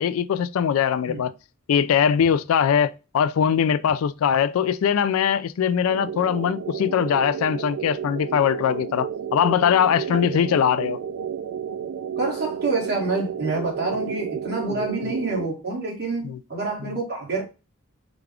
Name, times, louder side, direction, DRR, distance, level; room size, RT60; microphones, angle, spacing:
voice 1, 0.0-1.3 1.7-11.0 16.2-16.4 16.8-16.9, left 8 dB, 80° left, 0.3 m, -21 dB
sound 1, 5.9-15.5, right 8 dB, 75° right, 0.3 m, -32 dB
voice 2, 12.2-17.4, right 3 dB, 50° right, 1.9 m, -27 dB
4.9 x 2.4 x 3.3 m
head